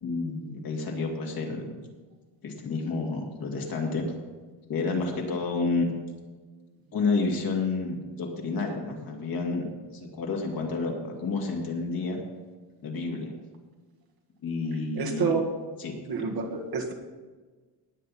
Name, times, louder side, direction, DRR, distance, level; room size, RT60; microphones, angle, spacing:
voice 1, 0.0-1.8 2.4-4.0 4.7-6.0 6.9-12.2 12.8-13.3 14.4-15.3 15.8-16.3, left 3 dB, 50° left, 1 dB, 2.4 m, -30 dB
voice 2, 14.9-15.5 16.1-16.9, right 5 dB, 50° right, 2 dB, 1.7 m, -28 dB
19.0 x 7.9 x 4.2 m, 1.4 s
cardioid pair, 155°, 46 cm